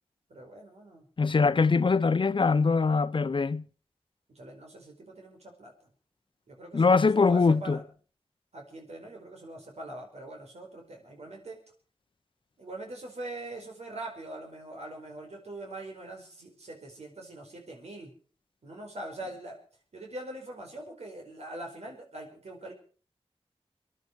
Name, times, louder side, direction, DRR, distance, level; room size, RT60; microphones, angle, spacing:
voice 1, 0.3-1.0 4.3-5.9 6.5-6.8 7.1-7.8 8.5-11.6 12.6-18.1 18.6-19.6 19.9-22.7, right 2 dB, 90° right, 4.8 m, -42 dB
voice 2, 1.2-3.6 6.7-7.8, left 4 dB, 50° left, 0.7 m, -23 dB
26.0 x 11.0 x 4.7 m
wide cardioid pair, 90°, 11 cm